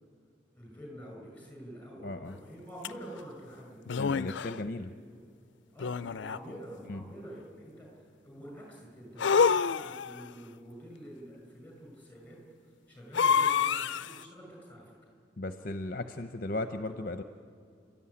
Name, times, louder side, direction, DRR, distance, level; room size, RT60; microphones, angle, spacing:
voice 1, 0.5-4.0 4.9-5.2 5.7-15.1, equal, 10° left, 0 dB, 6.1 m, -47 dB
voice 2, 2.0-2.3 4.0-4.9 6.9-7.0 15.4-17.2, left 2 dB, 50° left, 8 dB, 0.8 m, -36 dB
sound 1, 2.8-2.9 3.9-4.6 5.8-6.6 9.2-10.2 13.1-14.2, left 6 dB, 75° left, 0.5 m, -27 dB
29.5 x 13.0 x 9.8 m, 2.4 s
head